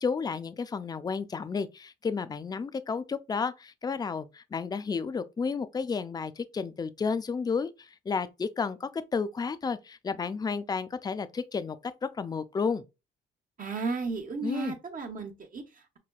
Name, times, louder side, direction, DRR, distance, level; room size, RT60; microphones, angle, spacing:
voice 1, 0.0-12.8 14.4-14.7, left 5 dB, 20° left, 0.4 m, -32 dB
voice 2, 13.6-16.0, right 4 dB, 45° right, 0.9 m, -34 dB
5.8 x 2.2 x 2.2 m
cardioid pair, 90°, 20 cm